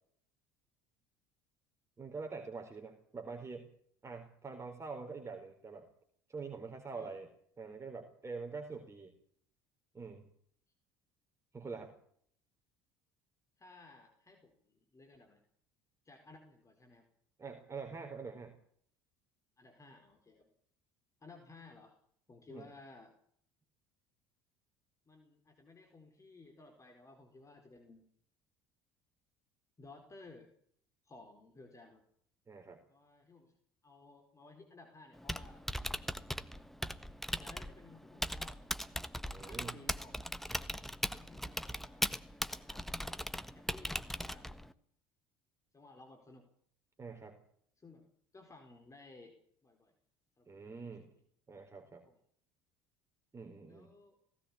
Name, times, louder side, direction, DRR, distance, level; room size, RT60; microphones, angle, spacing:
voice 1, 2.0-3.7 4.0-5.9 6.3-7.3 7.6-9.1 9.9-10.3 11.5-11.9 17.4-18.5 22.5-22.7 32.5-32.8 39.3-39.8 47.0-47.4 50.5-51.1 51.5-52.0 53.3-53.9, right 4 dB, 25° right, 3 dB, 4.2 m, -45 dB
voice 2, 13.6-15.4 16.0-17.1 19.6-20.5 21.2-22.0 22.3-23.1 25.1-28.1 29.8-30.5 31.0-32.0 32.9-33.6 33.8-35.6 37.4-38.6 39.4-40.5 41.0-42.1 42.5-43.1 43.5-44.5 45.7-46.5 47.8-48.0 48.3-49.4 49.6-49.9 50.4-50.7 51.0-51.2 52.0-52.2 53.7-54.2, left 3 dB, 25° left, 5 dB, 4.6 m, -57 dB
Typing, 35.1-44.7, equal, ahead, 1.4 m, -39 dB
18.5 x 17.5 x 8.7 m, 0.64 s
hypercardioid pair, 65°, 12 cm